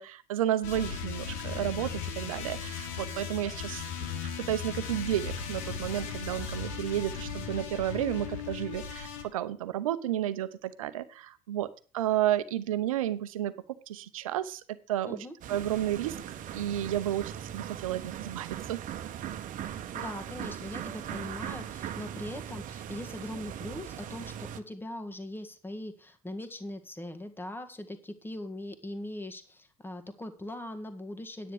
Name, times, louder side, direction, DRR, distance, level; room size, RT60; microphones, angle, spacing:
voice 1, 0.0-4.1 4.5-11.7 11.9-13.5 13.9-15.2 15.5-18.8, right 12 dB, 80° right, 14 dB, 0.8 m, -32 dB
sound 1, 0.6-9.2, left 6 dB, 70° left, 1.7 m, -37 dB
sound 2, 15.4-24.6, right 10 dB, 50° right, 1.1 m, -39 dB
voice 2, 19.9-31.5, left 1 dB, 10° left, 8 dB, 1.8 m, -40 dB
9.9 x 9.2 x 4.9 m, 0.37 s
hypercardioid pair, 60°, 17 cm